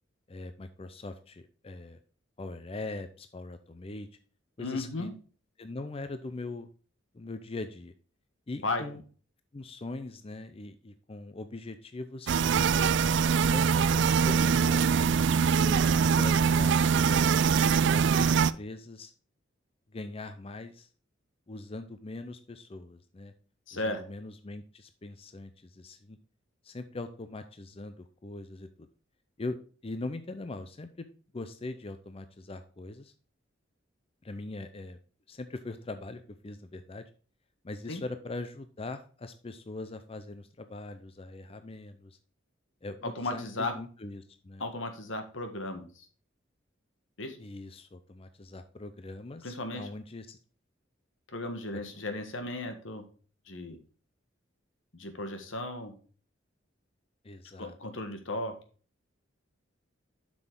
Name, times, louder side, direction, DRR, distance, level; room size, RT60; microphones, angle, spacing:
voice 1, 0.3-2.0 2.4-4.1 4.6-5.1 5.6-6.7 7.1-7.9 8.5-9.0 9.5-13.0 13.4-16.8 17.0-17.2 17.9-19.1 19.9-20.9 21.5-23.3 23.7-26.2 26.6-28.9 29.4-29.6 29.8-31.1 31.3-33.1 34.2-35.0 35.3-37.1 37.6-42.2 42.8-44.6 47.4-50.4 51.7-51.8 57.2-57.8, left 2 dB, 30° left, 10 dB, 0.5 m, -41 dB
voice 2, 4.6-5.1 8.6-8.8 23.7-24.0 37.9-38.0 43.0-43.7 44.6-46.1 47.2-47.4 49.4-49.9 51.3-53.0 53.5-53.8 54.9-55.9 57.6-58.5, left 2 dB, 85° left, 6 dB, 1.5 m, -35 dB
sound 1, 12.3-18.5, right 6 dB, 65° right, 0.4 m, -23 dB
7.7 x 6.1 x 3.7 m, 0.40 s
head